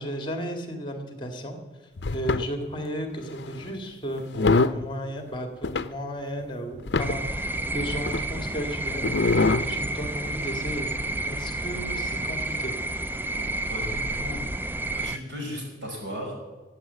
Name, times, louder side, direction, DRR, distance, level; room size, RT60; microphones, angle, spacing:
voice 1, 0.0-1.6 2.1-10.9 11.3-12.7, equal, 25° left, 5 dB, 1.9 m, -34 dB
sound 1, 2.0-2.5 3.4-3.6 4.2-4.8 5.6-5.9 6.4-6.5 6.7-7.3 8.1-8.2 9.0-9.6 10.2-10.3, left 3 dB, 65° left, 0.6 m, -23 dB
sound 2, 7.0-15.2, right 2 dB, 10° right, 0.4 m, -30 dB
voice 2, 13.3-14.4 15.0-16.3, equal, 75° right, 0 dB, 5.8 m, -36 dB
14.5 x 8.1 x 9.6 m, 1.3 s
head